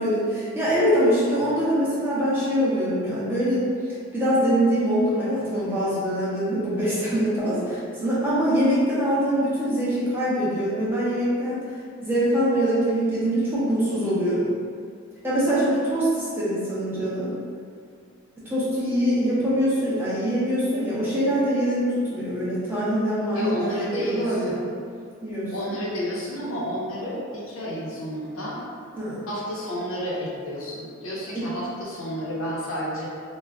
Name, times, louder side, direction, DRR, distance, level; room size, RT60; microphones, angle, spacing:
voice 1, 0.0-3.7 4.1-11.6 12.0-14.5 15.2-17.3 18.5-24.6 25.2-25.8 29.0-29.2 31.3-31.5, equal, 10° right, -10 dB, 0.5 m, -23 dB
voice 2, 23.3-24.6 25.5-28.6 29.3-33.1, equal, 70° left, -5 dB, 0.6 m, -31 dB
2.3 x 2.1 x 3.4 m, 2.2 s
head